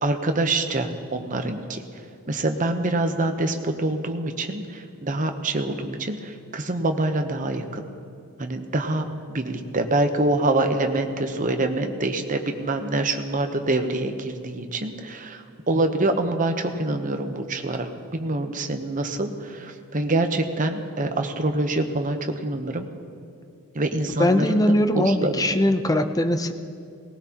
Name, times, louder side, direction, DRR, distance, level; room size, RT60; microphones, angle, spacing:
voice 1, 0.0-1.8 2.3-7.8 8.4-22.9 23.7-24.7 24.9-25.5, right 2 dB, 35° right, 6 dB, 0.9 m, -25 dB
voice 2, 24.2-26.5, left 1 dB, 15° left, 8 dB, 0.5 m, -21 dB
18.5 x 18.5 x 2.9 m, 2.5 s
head